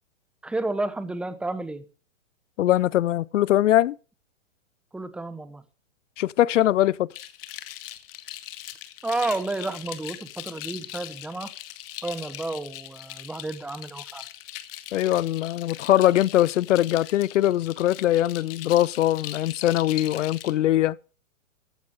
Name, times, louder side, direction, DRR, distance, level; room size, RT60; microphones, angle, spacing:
voice 1, 0.4-1.9 4.9-5.6 9.0-11.5 12.0-14.2, right 2 dB, 5° right, 0.8 m, -31 dB
voice 2, 2.6-4.0 6.2-7.1 14.9-21.0, left 13 dB, 70° left, 0.6 m, -22 dB
sound 1, 7.1-20.5, left 14 dB, 45° left, 1.6 m, -40 dB
14.5 x 9.8 x 4.9 m
hypercardioid pair, 135°, 39 cm